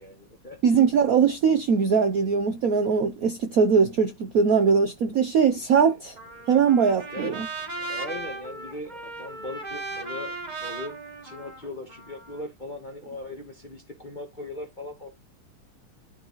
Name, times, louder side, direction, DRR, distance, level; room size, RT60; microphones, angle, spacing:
voice 1, 0.0-0.6 5.5-5.9 7.1-15.1, left 2 dB, 30° left, 0.9 m, -39 dB
voice 2, 0.6-6.1 6.5-7.5, right 6 dB, 65° right, 0.9 m, -21 dB
Trumpet, 6.2-12.4, right 3 dB, 25° right, 1.2 m, -37 dB
11.5 x 4.0 x 3.0 m
omnidirectional pair, 2.3 m